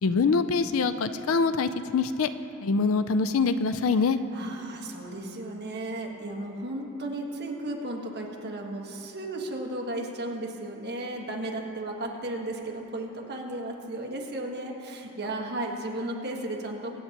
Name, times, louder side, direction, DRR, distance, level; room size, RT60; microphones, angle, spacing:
voice 1, 0.0-2.3 2.6-4.2, left 4 dB, 70° left, 11 dB, 0.5 m, -24 dB
voice 2, 4.3-17.0, right 1 dB, 50° right, 0 dB, 1.4 m, -34 dB
24.0 x 9.1 x 2.9 m, 3.0 s
head